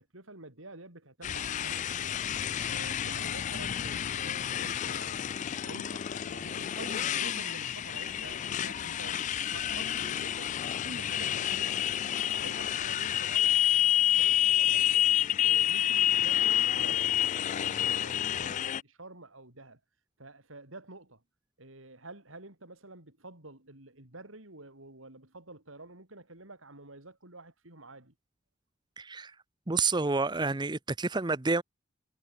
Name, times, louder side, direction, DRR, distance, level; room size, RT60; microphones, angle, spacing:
voice 1, 0.0-2.2 2.6-5.3 5.6-10.6 10.8-12.0 12.3-15.1 15.4-19.8 20.2-21.2 21.6-28.1, right 2 dB, 85° right, 5.6 m, -49 dB
Motorcycle, 1.2-18.8, left 10 dB, 40° left, 0.3 m, -29 dB
voice 2, 29.0-29.3 29.7-31.6, right 3 dB, 20° right, 0.8 m, -29 dB
head